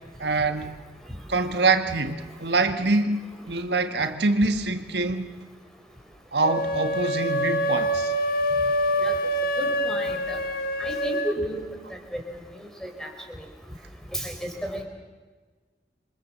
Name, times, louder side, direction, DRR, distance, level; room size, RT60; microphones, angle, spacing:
voice 1, 0.2-0.7 1.3-5.3 6.3-8.1, right 3 dB, 75° right, 7 dB, 1.6 m, -25 dB
sound 1, 6.4-11.4, equal, 55° left, 1.8 m, -25 dB
voice 2, 9.6-10.4 10.8-11.6 12.8-13.1 14.1-14.3 14.7-14.8, equal, 5° left, 3 dB, 4.1 m, -32 dB
27.5 x 24.5 x 7.4 m, 1.4 s
head